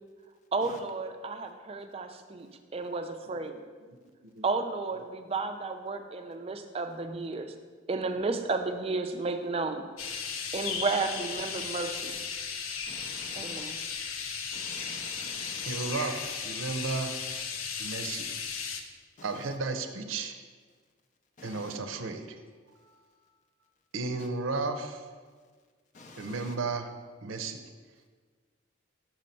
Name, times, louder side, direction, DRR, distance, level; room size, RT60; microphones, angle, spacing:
voice 1, 0.5-3.6 4.4-7.5 7.9-9.9 10.5-12.2 13.3-13.8, right 3 dB, 30° right, 7 dB, 0.4 m, -32 dB
sound 1, 10.0-18.8, left 6 dB, 90° left, 0.6 m, -36 dB
voice 2, 12.9-13.6 14.5-16.0 19.2-19.4 21.4-21.8 25.9-26.5, left 3 dB, 40° left, 4 dB, 0.4 m, -49 dB
voice 3, 15.7-17.2 17.8-18.3 19.2-20.4 21.4-22.4 22.8-22.9 23.9-25.0 26.2-26.9 27.2-27.6, right 3 dB, 80° right, 7 dB, 0.6 m, -34 dB
6.2 x 4.3 x 5.2 m, 1.6 s
head